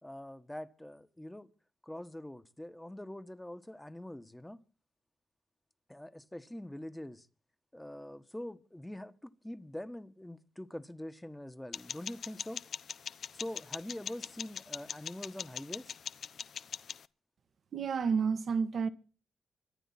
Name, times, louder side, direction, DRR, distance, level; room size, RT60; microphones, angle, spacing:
voice 1, 0.0-1.5 1.8-4.6 5.9-7.3 7.7-12.6 13.3-16.0, left 1 dB, 10° left, 1.5 m, -44 dB
sound 1, 11.7-17.0, left 7 dB, 70° left, 0.8 m, -42 dB
voice 2, 17.7-18.9, right 6 dB, 65° right, 1.4 m, -30 dB
25.0 x 9.9 x 4.3 m
cardioid pair, 70°, 0 cm